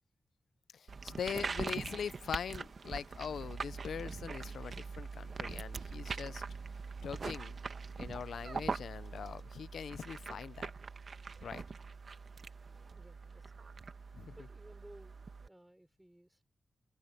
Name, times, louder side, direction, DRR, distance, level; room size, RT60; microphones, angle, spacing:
voice 1, 0.7-6.4 7.0-7.6 8.0-10.7 11.4-11.6 14.1-14.4, left 7 dB, 90° left, 0.4 m, -42 dB
sound 1, 0.9-15.5, right 4 dB, 50° right, 1.1 m, -43 dB
sound 2, 2.4-8.6, right 6 dB, 75° right, 3.8 m, -67 dB
voice 2, 12.4-13.8 14.1-16.4, right 1 dB, 5° right, 5.3 m, -59 dB
open air
wide cardioid pair, 130°, 0 cm